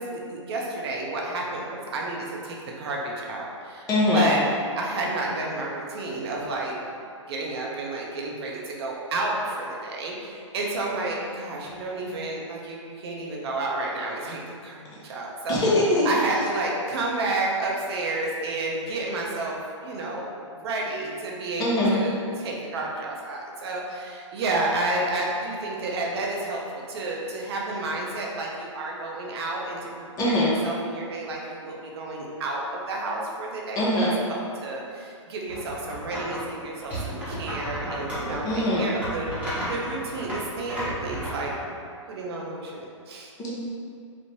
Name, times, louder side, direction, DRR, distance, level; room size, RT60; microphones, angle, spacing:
voice 1, 0.0-4.4 4.8-6.8 7.3-15.6 16.0-41.5 42.1-43.5, right 2 dB, 55° right, -2 dB, 0.5 m, -31 dB
voice 2, 3.9-4.4 15.5-16.1 21.6-22.0 30.2-30.5 33.8-34.2 38.4-38.9 43.4-43.5, left 1 dB, 25° left, -6 dB, 0.6 m, -22 dB
sound 1, 35.5-36.4 36.8-41.6, right 1 dB, 10° right, 0.9 m, -33 dB
3.1 x 2.0 x 2.7 m, 2.3 s
figure-of-eight pair, 120°, 16 cm